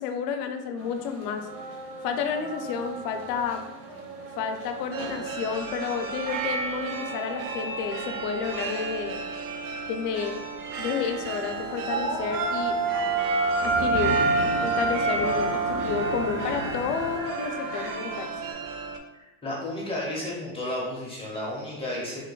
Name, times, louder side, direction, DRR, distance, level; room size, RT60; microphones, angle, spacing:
voice 1, 0.0-1.5 2.0-3.6 4.4-9.2 9.9-10.4 10.8-12.8 13.6-14.2 14.6-18.3, left 6 dB, 70° left, 7 dB, 0.6 m, -31 dB
sound 1, 0.8-18.5, right 2 dB, 60° right, 0.9 m, -31 dB
sound 2, 4.9-19.0, right 5 dB, 80° right, 0.6 m, -34 dB
Thunder / Rain, 10.7-17.2, right 2 dB, 35° right, 0.6 m, -37 dB
voice 2, 19.4-22.2, left 1 dB, 10° left, -5 dB, 0.5 m, -32 dB
3.0 x 2.1 x 3.8 m, 1.0 s
cardioid pair, 145°, 48 cm